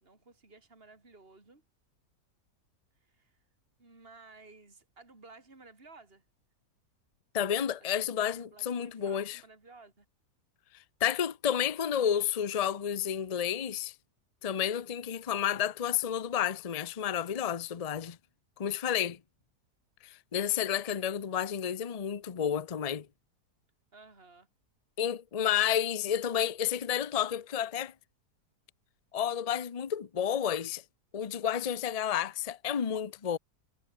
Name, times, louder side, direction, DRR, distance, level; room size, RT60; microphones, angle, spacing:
voice 1, 0.0-1.6 3.0-3.4 3.8-6.2 8.3-10.1 23.9-24.5, right 3 dB, 35° right, 4.1 m, -55 dB
voice 2, 7.3-9.4 11.0-13.9 14.4-18.2 18.6-19.2 20.0-23.1 25.0-27.9 29.1-30.8 31.1-33.4, left 9 dB, 35° left, 0.7 m, -31 dB
omnidirectional pair, 1.7 m